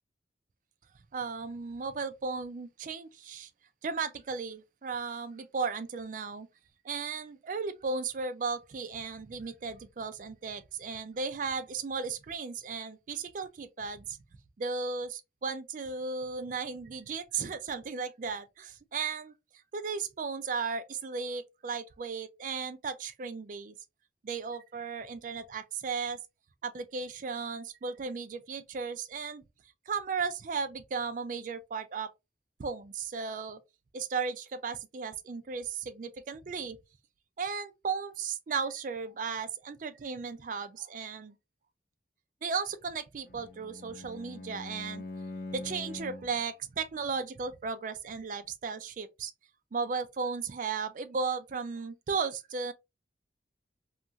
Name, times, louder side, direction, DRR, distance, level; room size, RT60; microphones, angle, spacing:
voice 1, 1.1-3.5 3.8-6.5 6.8-14.2 14.6-19.3 19.7-23.7 24.2-26.2 26.6-29.4 29.9-32.1 32.6-33.6 33.9-36.8 37.4-41.4 42.4-45.1 45.5-49.3 49.7-52.7, right 5 dB, 45° right, 0.4 m, -35 dB
Bowed string instrument, 43.2-46.4, left 2 dB, 55° left, 0.4 m, -43 dB
2.9 x 2.4 x 2.6 m
head